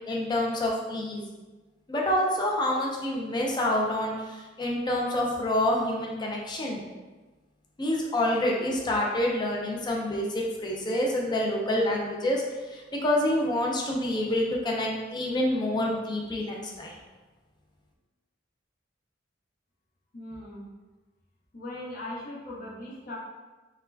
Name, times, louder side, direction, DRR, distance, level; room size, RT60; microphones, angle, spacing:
voice 1, 0.1-1.2 1.9-6.9 7.8-12.4 12.7-17.0, left 1 dB, 25° left, -2 dB, 0.5 m, -27 dB
voice 2, 20.1-20.7 21.5-23.2, left 1 dB, 50° left, -5 dB, 0.9 m, -39 dB
4.0 x 2.2 x 2.7 m, 1.2 s
head